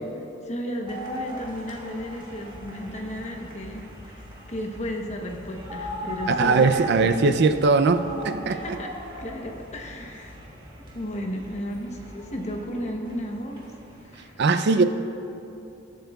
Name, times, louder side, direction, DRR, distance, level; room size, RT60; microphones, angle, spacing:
voice 1, 0.4-7.3 8.4-10.4 10.9-13.7 14.0-14.4, equal, 35° left, 2 dB, 1.0 m, -34 dB
sound 1, 0.9-14.2, equal, 25° right, 1.5 m, -38 dB
voice 2, 6.3-8.8 14.4-14.8, right 4 dB, 60° right, 10 dB, 0.5 m, -20 dB
21.0 x 7.7 x 2.3 m, 2.8 s
head